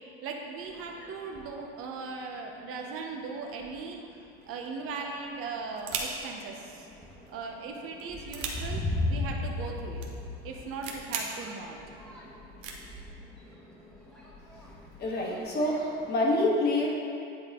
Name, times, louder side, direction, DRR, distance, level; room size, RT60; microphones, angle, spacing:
voice 1, 0.2-4.0 4.5-6.9 7.3-10.1 10.4-11.8, right 4 dB, 50° right, 2 dB, 0.8 m, -38 dB
sound 1, 0.6-1.6 2.4-2.5 3.0-3.2 3.5-4.1 4.8-5.0 5.5-16.1, left 2 dB, ahead, 1.2 m, -38 dB
sound 2, 4.4-4.8 5.1-5.2 5.4-6.4 7.2-7.5 7.9-8.5 9.4-9.5 9.8-10.1 10.4-10.5 10.8-11.2 11.8-11.9 12.6-12.8, right 6 dB, 75° right, 1.1 m, -36 dB
voice 2, 15.0-15.8 16.1-16.9, left 2 dB, 35° left, -2 dB, 1.4 m, -26 dB
9.5 x 4.1 x 3.6 m, 2.6 s
supercardioid pair, 115°, 29 cm